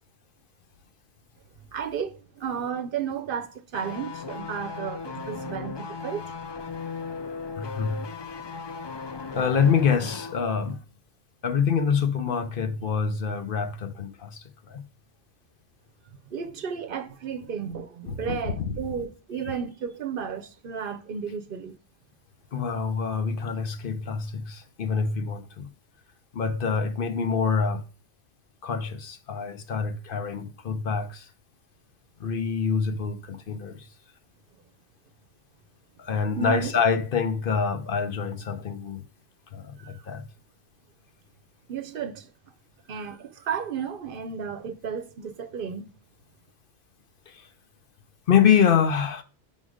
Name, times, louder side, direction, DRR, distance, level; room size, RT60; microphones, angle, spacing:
voice 1, 1.7-6.3 16.3-21.8 36.4-36.7 39.8-40.1 41.7-42.5 42.9-45.9, right 7 dB, 60° right, 0.8 m, -33 dB
sound 1, 3.7-10.4 10.7-10.8, left 5 dB, 45° left, 0.3 m, -37 dB
voice 2, 7.6-8.1 9.3-10.8 11.4-14.8 18.1-18.8 19.5-19.6 22.5-25.7 26.3-27.8 28.6-31.3 32.2-33.9 36.0-39.0 39.5-40.2 47.3-47.5 48.3-49.2, left 6 dB, 60° left, 0.9 m, -26 dB
5.5 x 5.1 x 4.9 m
omnidirectional pair, 1.1 m